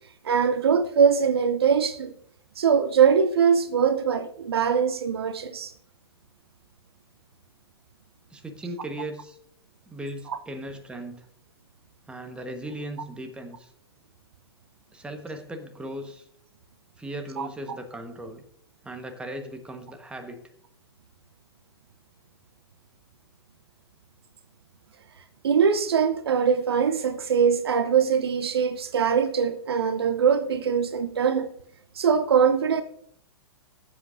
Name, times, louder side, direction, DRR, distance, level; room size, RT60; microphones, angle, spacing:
voice 1, 0.2-2.1 2.6-5.7 17.4-17.5 25.4-31.5 32.0-32.8, right 7 dB, 70° right, 0.7 m, -22 dB
voice 2, 8.3-9.4 9.9-11.2 12.1-13.7 14.9-16.3 17.0-18.4 18.8-20.4, right 1 dB, 5° right, 1.3 m, -37 dB
15.5 x 7.6 x 2.6 m
figure-of-eight pair, 105°, 14 cm